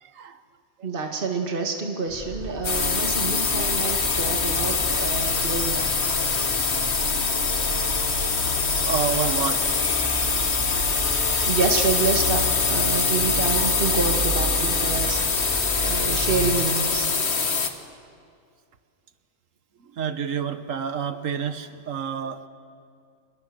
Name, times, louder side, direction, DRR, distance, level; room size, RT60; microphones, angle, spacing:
voice 1, 0.0-0.4 2.7-2.9 8.6-9.7 19.8-22.5, right 7 dB, 80° right, 10 dB, 1.6 m, -29 dB
voice 2, 0.8-5.9 11.5-17.1, right 4 dB, 45° right, 3 dB, 2.1 m, -28 dB
sound 1, 2.1-16.5, equal, 10° right, 6.1 m, -34 dB
sound 2, 2.6-17.7, left 4 dB, 55° left, 1.7 m, -24 dB
sound 3, 5.8-17.4, equal, 60° right, 3.3 m, -45 dB
27.0 x 21.5 x 7.8 m, 2.3 s
omnidirectional pair, 1.3 m